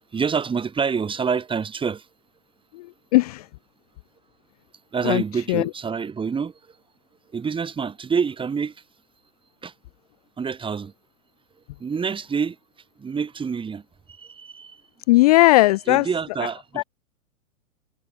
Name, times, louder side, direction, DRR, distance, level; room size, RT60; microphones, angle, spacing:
voice 1, 0.1-2.0 4.9-6.5 7.3-8.7 9.6-9.7 10.4-10.9 11.8-12.6 13.0-13.8 14.2-14.8 15.9-16.8, right 6 dB, 10° right, 2.1 m, -27 dB
voice 2, 2.7-3.5 5.0-5.7 15.1-16.1 16.8-16.9, left 20 dB, 30° left, 0.4 m, -18 dB
hypercardioid pair, 115°, 41 cm